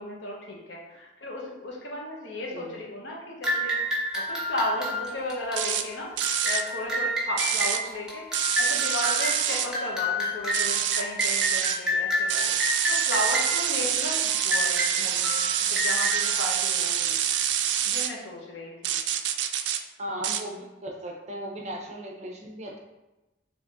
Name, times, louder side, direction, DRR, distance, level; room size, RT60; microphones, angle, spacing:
voice 1, 0.0-3.8 4.1-6.1 6.4-8.3 8.6-17.2 17.8-19.0, left 1 dB, 80° left, -2 dB, 1.0 m, -34 dB
sound 1, 3.4-17.6, left 1 dB, 5° right, 0.9 m, -30 dB
sound 2, 5.6-5.8 6.2-6.6 7.4-7.8 8.3-9.7 10.5-11.8 12.3-18.1 18.8-19.8 20.2-20.4, right 10 dB, 70° right, 0.3 m, -26 dB
voice 2, 20.0-22.8, equal, 40° right, 1 dB, 0.6 m, -37 dB
3.9 x 3.4 x 3.6 m, 1.0 s
head